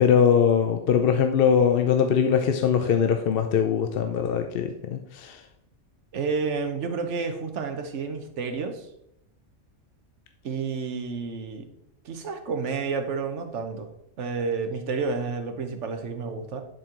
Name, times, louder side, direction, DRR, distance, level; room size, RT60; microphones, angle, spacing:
voice 1, 0.0-5.4, left 7 dB, 60° left, 6 dB, 0.7 m, -21 dB
voice 2, 6.1-8.9 10.4-11.7 12.0-13.9 14.2-16.6, right 4 dB, 70° right, 6 dB, 1.2 m, -30 dB
10.5 x 4.5 x 3.8 m, 0.79 s
omnidirectional pair, 1.3 m